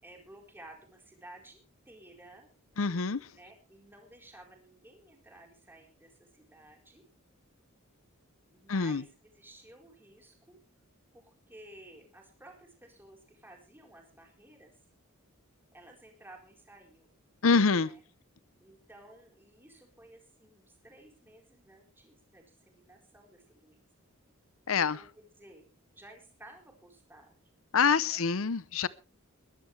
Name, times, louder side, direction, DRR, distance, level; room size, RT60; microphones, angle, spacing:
voice 1, 0.0-2.5 3.3-7.0 8.5-9.1 9.3-10.6 11.1-14.7 15.7-17.1 17.8-18.0 18.6-23.8 24.8-25.7 25.9-27.4 28.0-28.2, right 1 dB, 10° right, 4.3 m, -55 dB
voice 2, 2.8-3.3 8.7-9.0 17.4-17.9 24.7-25.0 27.7-28.9, left 5 dB, 70° left, 0.7 m, -26 dB
21.0 x 13.0 x 3.3 m
head